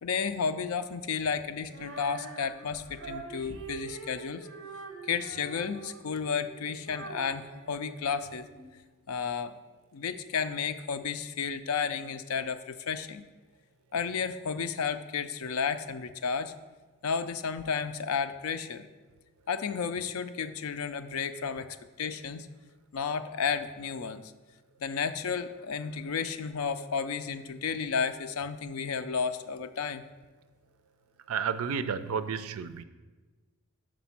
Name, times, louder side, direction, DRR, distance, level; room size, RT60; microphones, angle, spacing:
voice 1, 0.0-4.5 5.0-8.5 9.1-9.5 9.9-13.2 13.9-16.5 17.0-18.9 19.5-22.5 22.9-24.3 24.8-30.0, left 6 dB, 85° left, 11 dB, 0.4 m, -32 dB
Female singing, 1.7-8.7, right 4 dB, 60° right, 0.8 m, -45 dB
voice 2, 31.3-32.8, right 6 dB, 85° right, 12 dB, 0.4 m, -31 dB
6.0 x 5.1 x 5.7 m, 1.3 s
head